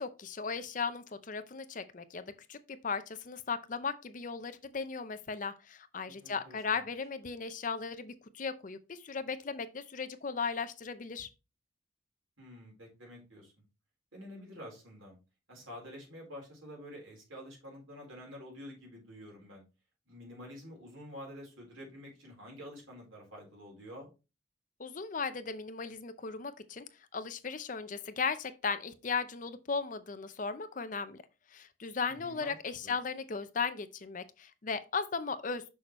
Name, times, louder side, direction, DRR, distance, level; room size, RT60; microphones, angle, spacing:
voice 1, 0.0-11.3 24.8-31.2 31.5-35.6, left 5 dB, 40° left, 0.5 m, -37 dB
voice 2, 6.2-6.8 12.4-13.5 14.1-15.2 15.5-19.6 20.1-24.1 32.1-32.5 32.8-32.9, equal, 85° right, 3.9 m, -48 dB
6.4 x 6.1 x 3.0 m
head